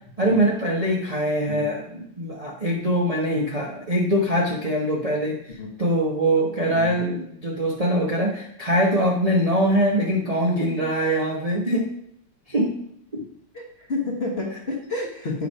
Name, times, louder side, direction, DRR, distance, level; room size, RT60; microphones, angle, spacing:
voice 1, 0.2-11.9 12.5-12.7 13.1-13.2, right 1 dB, 35° right, -3 dB, 0.6 m, -23 dB
voice 2, 13.5-15.5, left 3 dB, 35° left, -2 dB, 1.2 m, -30 dB
9.0 x 3.3 x 5.4 m, 0.72 s
omnidirectional pair, 2.4 m